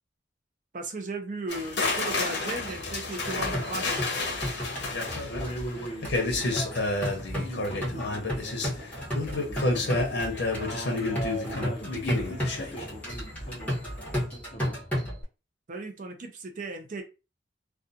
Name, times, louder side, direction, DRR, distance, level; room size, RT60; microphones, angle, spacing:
voice 1, 0.7-4.1 10.6-10.7 15.7-17.0, right 3 dB, 45° right, 0.4 m, -36 dB
sound 1, 1.5-13.6 13.9-14.2, left 2 dB, 75° left, 0.7 m, -30 dB
sound 2, 2.5-15.2, equal, 10° left, 1.0 m, -34 dB
voice 2, 5.3-7.0 7.4-8.8 9.3-10.1 10.5-13.9 14.3-14.9, right 1 dB, 30° left, 0.7 m, -40 dB
2.4 x 2.3 x 2.6 m
head